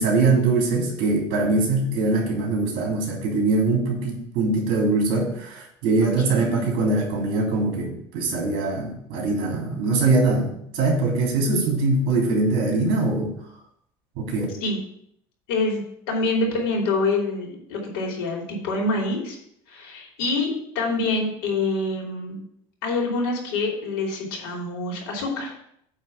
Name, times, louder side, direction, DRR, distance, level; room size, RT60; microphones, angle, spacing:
voice 1, 0.0-13.3 14.2-14.4, right 3 dB, 55° right, -1 dB, 3.3 m, -22 dB
voice 2, 6.0-6.7 14.6-14.8 15.5-19.4 19.7-22.4 22.8-25.5, left 2 dB, 85° left, 0 dB, 3.0 m, -26 dB
8.9 x 3.6 x 6.7 m, 0.71 s
cardioid pair, 170°, 11 cm